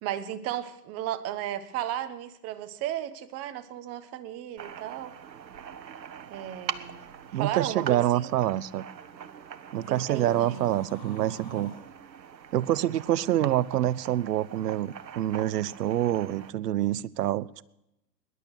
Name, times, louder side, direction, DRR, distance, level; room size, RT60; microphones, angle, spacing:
voice 1, 0.0-5.1 6.3-8.3 9.9-10.7, right 12 dB, 30° right, 1.2 m, -34 dB
sound 1, 4.6-16.5, right 8 dB, 90° right, 1.0 m, -43 dB
voice 2, 7.3-8.9 9.7-11.7 12.5-17.6, right 13 dB, 65° right, 0.8 m, -26 dB
sound 2, 9.7-11.8, left 3 dB, 30° left, 4.4 m, -49 dB
19.5 x 11.0 x 6.5 m
hypercardioid pair, 120°, 50 cm